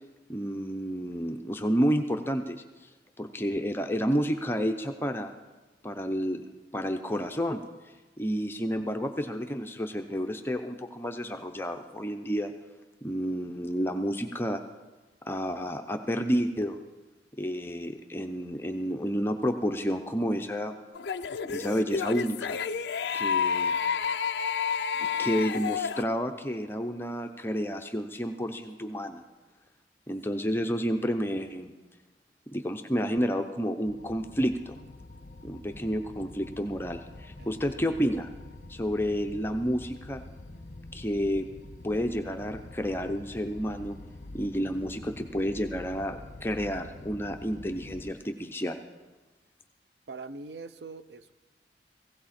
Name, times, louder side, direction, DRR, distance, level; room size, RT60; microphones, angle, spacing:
voice 1, 0.3-2.6 3.2-5.3 5.8-6.4 6.7-7.6 8.2-12.5 13.0-14.6 15.3-16.8 17.4-20.8 21.5-22.6 23.1-23.7 25.0-29.2 30.1-31.7 32.5-34.7 35.4-38.3 38.7-40.2 40.9-41.5 41.8-44.0 44.3-48.8, equal, 15° left, 5 dB, 0.6 m, -30 dB
sound 1, 20.9-26.0, left 6 dB, 75° left, 0.4 m, -30 dB
sound 2, 33.8-48.1, left 2 dB, 45° left, 0.8 m, -46 dB
voice 2, 37.4-37.8 50.1-51.3, right 3 dB, 70° right, 13 dB, 0.6 m, -43 dB
17.5 x 16.0 x 4.3 m, 1.2 s
head